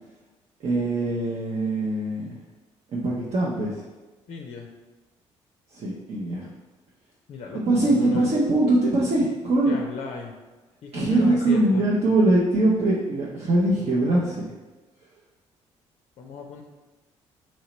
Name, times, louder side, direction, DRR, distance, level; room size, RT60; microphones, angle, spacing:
voice 1, 0.6-2.4 2.9-3.8 5.7-6.5 7.5-9.7 10.9-14.4, right 2 dB, 45° right, -5 dB, 0.8 m, -22 dB
voice 2, 4.3-4.7 7.3-8.3 9.7-10.3 10.8-11.9 16.2-16.6, left 4 dB, 45° left, 2 dB, 0.5 m, -36 dB
3.1 x 2.8 x 4.2 m, 1.2 s
figure-of-eight pair, 50°, 15 cm